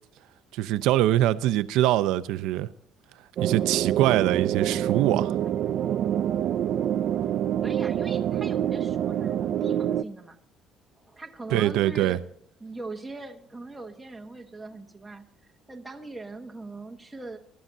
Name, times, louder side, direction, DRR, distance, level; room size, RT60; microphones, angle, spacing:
voice 1, 0.5-2.7 3.4-5.4 11.5-12.2, right 14 dB, 85° right, 0.7 m, -23 dB
sound 1, 3.4-10.0, right 10 dB, 45° right, 0.5 m, -26 dB
voice 2, 7.6-10.4 11.0-12.2 12.6-15.2 15.7-17.4, right 2 dB, 5° right, 1.2 m, -40 dB
23.0 x 13.0 x 2.8 m
cardioid pair, 180°, 0 cm